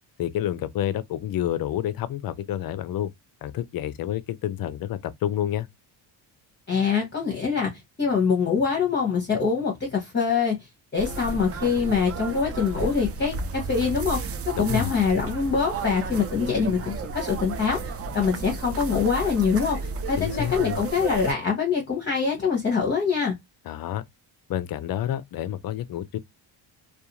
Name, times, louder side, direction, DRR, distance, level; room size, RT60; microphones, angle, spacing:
voice 1, 0.2-3.1 3.4-5.7 14.6-14.9 20.2-20.8 23.6-24.0 24.5-26.2, left 11 dB, 50° left, 0.4 m, -29 dB
voice 2, 6.7-7.7 8.0-10.6 10.9-23.4, left 5 dB, 25° left, 0.8 m, -24 dB
sound 1, 11.0-21.3, right 4 dB, 35° right, 0.4 m, -33 dB
2.4 x 2.3 x 2.8 m
cardioid pair, 105°, 48 cm